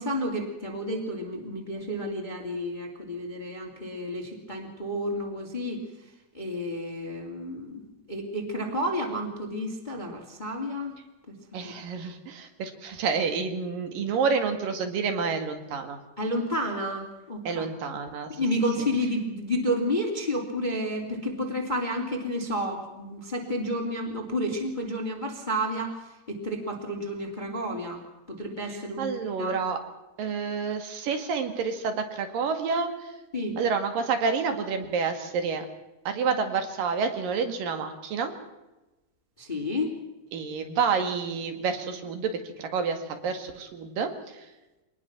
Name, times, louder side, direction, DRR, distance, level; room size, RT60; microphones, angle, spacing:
voice 1, 0.0-5.8 6.3-10.9 11.3-11.4 11.6-11.7 16.2-17.7 18.3-26.0 26.3-28.0 28.3-29.6 33.3-33.5 39.4-39.9, equal, 15° left, 1 dB, 2.3 m, -31 dB
voice 2, 11.5-16.0 17.5-18.4 28.7-29.8 30.2-33.2 33.6-35.7 36.1-38.3 40.3-44.5, right 5 dB, 65° right, 6 dB, 3.6 m, -29 dB
24.5 x 19.5 x 6.0 m, 1.0 s
omnidirectional pair, 4.4 m